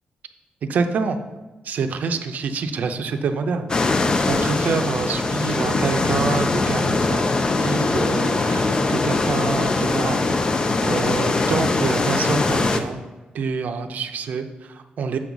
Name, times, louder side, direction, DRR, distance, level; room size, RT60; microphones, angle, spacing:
voice 1, 0.6-1.2 1.6-4.0 4.3-7.2 7.6-13.0 13.3-15.2, right 5 dB, 65° right, 8 dB, 0.6 m, -27 dB
sound 1, 3.7-12.8, left 3 dB, 30° left, 0.4 m, -21 dB
7.6 x 3.9 x 6.0 m, 1.1 s
wide cardioid pair, 150°, 3 cm